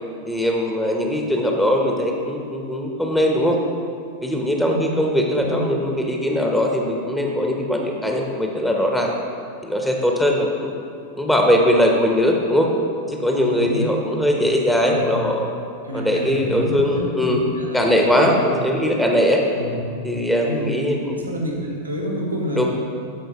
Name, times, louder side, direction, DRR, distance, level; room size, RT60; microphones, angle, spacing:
voice 1, 0.3-3.6 4.2-9.1 9.6-10.7 11.2-12.7 13.1-15.5 15.9-17.4 17.7-19.4 20.0-21.2 22.6-22.7, equal, 5° left, 1 dB, 0.9 m, -20 dB
voice 2, 13.4-14.3 14.8-15.3 15.8-17.9 18.2-18.4 19.5-19.9 20.4-20.8 21.2-22.7, equal, 90° right, -2 dB, 1.5 m, -28 dB
13.0 x 5.2 x 3.0 m, 2.5 s
figure-of-eight pair, 90°, 0 cm